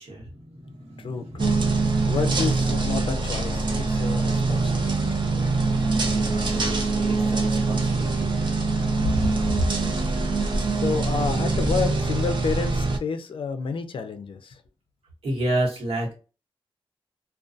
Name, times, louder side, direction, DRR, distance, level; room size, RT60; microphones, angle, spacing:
voice 1, 0.0-1.6 6.1-8.3 8.9-10.2 15.2-16.1, right 1 dB, 85° right, 1.1 m, -30 dB
voice 2, 1.0-1.6 2.1-5.2 9.9-10.2 10.5-14.6, left 5 dB, 60° left, 0.4 m, -30 dB
sound 1, 1.4-13.0, right 3 dB, 55° right, 0.6 m, -24 dB
2.4 x 2.2 x 2.5 m
wide cardioid pair, 125°, 10 cm